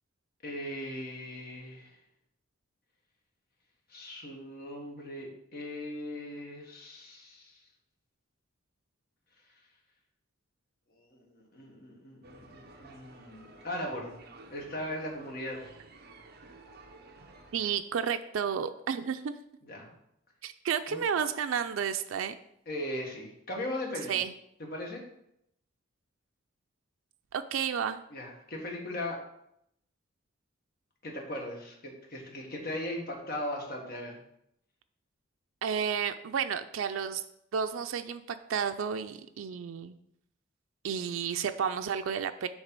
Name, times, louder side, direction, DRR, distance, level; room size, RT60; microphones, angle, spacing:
voice 1, 0.4-2.0 3.9-7.6 11.0-14.2 14.5-15.6 19.6-19.9 20.9-21.0 22.7-24.2 24.6-25.0 28.1-29.2 31.0-34.2, left 1 dB, 50° left, 0 dB, 1.5 m, -38 dB
sound 1, 12.2-17.8, right 2 dB, 50° right, 0.8 m, -53 dB
voice 2, 17.5-19.4 20.4-22.3 24.1-24.3 27.3-28.0 35.6-37.2 37.5-40.0 40.8-42.5, right 7 dB, 85° right, 8 dB, 0.4 m, -31 dB
7.2 x 3.3 x 5.3 m, 0.76 s
head